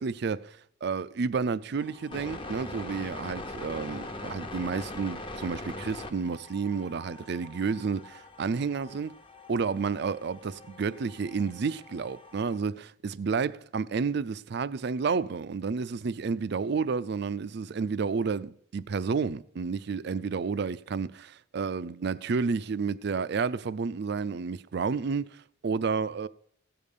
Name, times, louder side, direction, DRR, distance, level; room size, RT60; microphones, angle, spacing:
voice 1, 0.0-9.1 9.5-26.3, right 5 dB, 60° right, 0.4 m, -31 dB
sound 1, 1.8-12.6, left 2 dB, 25° left, 1.0 m, -42 dB
17.0 x 6.7 x 5.4 m
head